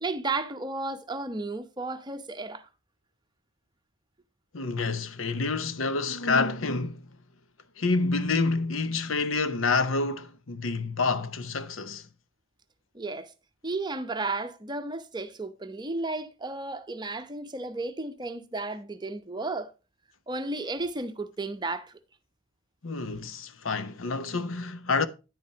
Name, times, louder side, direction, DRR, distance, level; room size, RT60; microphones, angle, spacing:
voice 1, 0.0-2.7 12.9-13.3 13.6-19.7 20.3-22.0, right 3 dB, 20° right, 0.8 m, -33 dB
voice 2, 4.5-7.0 7.8-12.1 22.8-25.1, left 3 dB, 85° left, 0.9 m, -28 dB
10.5 x 8.6 x 2.8 m
head